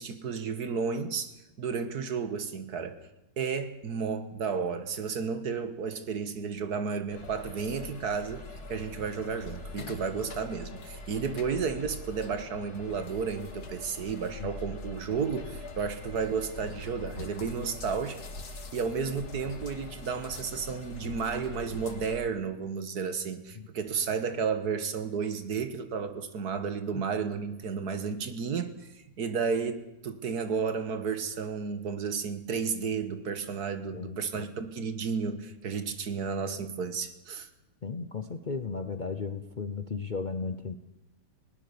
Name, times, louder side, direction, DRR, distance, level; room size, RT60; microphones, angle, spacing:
voice 1, 0.0-3.0 3.4-18.2 18.7-28.9 29.2-37.5, right 5 dB, 65° right, 10 dB, 1.9 m, -32 dB
sound 1, 7.1-22.3, left 2 dB, 65° left, 2.4 m, -43 dB
voice 2, 33.9-34.6 37.8-40.8, left 4 dB, 40° left, 9 dB, 0.7 m, -35 dB
20.0 x 18.5 x 6.9 m, 0.92 s
omnidirectional pair, 1.8 m